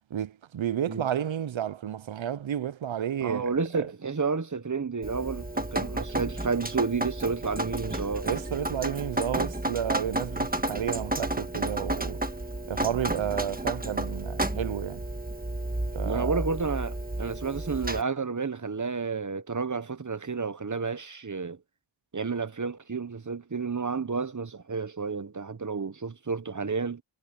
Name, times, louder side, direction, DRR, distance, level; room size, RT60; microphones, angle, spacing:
voice 1, 0.1-3.9 8.2-12.2 12.7-15.0 15.9-16.4, right 10 dB, 90° right, 0.5 m, -31 dB
voice 2, 3.2-8.3 16.0-21.6 22.1-27.0, right 4 dB, 40° right, 0.9 m, -31 dB
Drip, 5.0-18.0, right 1 dB, 20° right, 1.5 m, -32 dB
wide cardioid pair, 40°, 45 cm